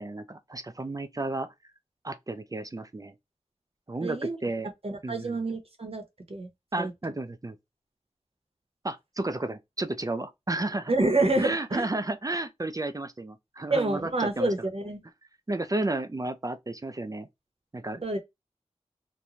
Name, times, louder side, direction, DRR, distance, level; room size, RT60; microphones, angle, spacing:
voice 1, 0.0-1.5 2.0-3.1 3.9-4.7 5.0-5.4 6.7-7.6 8.8-10.9 11.4-14.7 15.5-17.3 17.7-18.2, right 2 dB, 30° right, 0.4 m, -32 dB
voice 2, 4.0-4.4 4.8-6.0 6.3-6.5 6.8-6.9 10.9-11.8 13.7-15.0 18.0-18.2, right 2 dB, 55° right, 0.9 m, -27 dB
3.0 x 2.2 x 2.5 m
wide cardioid pair, 60°, 12 cm